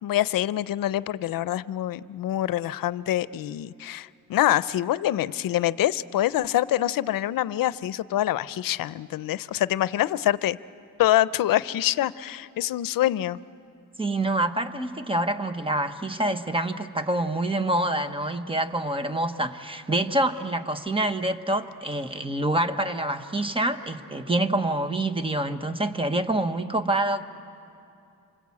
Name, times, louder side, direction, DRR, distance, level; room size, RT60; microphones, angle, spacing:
voice 1, 0.0-10.6 11.0-13.4, left 13 dB, 90° left, 17 dB, 0.6 m, -25 dB
voice 2, 14.0-27.2, right 1 dB, 15° right, 9 dB, 1.0 m, -26 dB
27.5 x 25.5 x 8.5 m, 2.5 s
wide cardioid pair, 150°, 33 cm